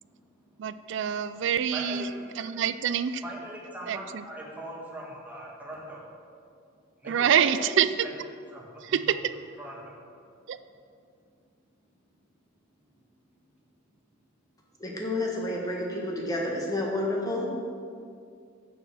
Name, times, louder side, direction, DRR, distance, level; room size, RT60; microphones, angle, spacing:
voice 1, 0.6-2.1 2.4-3.2 3.9-4.2 7.0-8.1 8.8-9.3 10.5-10.6, right 8 dB, 65° right, 14 dB, 0.4 m, -26 dB
voice 2, 1.7-2.1 2.4-2.5 3.2-6.0 7.0-8.1 8.5-9.0 9.6-9.9, right 1 dB, 10° right, -4 dB, 1.8 m, -41 dB
voice 3, 14.8-17.5, left 1 dB, 20° left, -2 dB, 1.5 m, -30 dB
6.7 x 6.5 x 7.4 m, 2.3 s
head